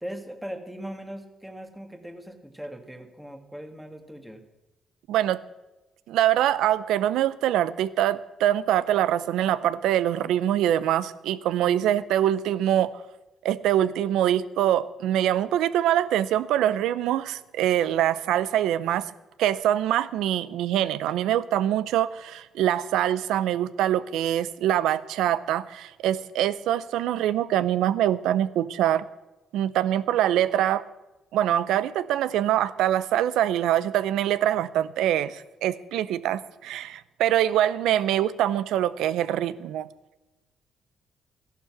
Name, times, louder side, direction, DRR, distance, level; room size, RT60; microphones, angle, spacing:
voice 1, 0.0-4.4, equal, 5° right, 6 dB, 1.6 m, -39 dB
voice 2, 5.1-5.4 6.1-12.9 13.4-19.1 19.4-29.1 29.5-30.8 31.3-39.9, right 11 dB, 90° right, 17 dB, 0.6 m, -24 dB
14.0 x 11.5 x 6.0 m, 1.0 s
cardioid pair, 90°, 0 cm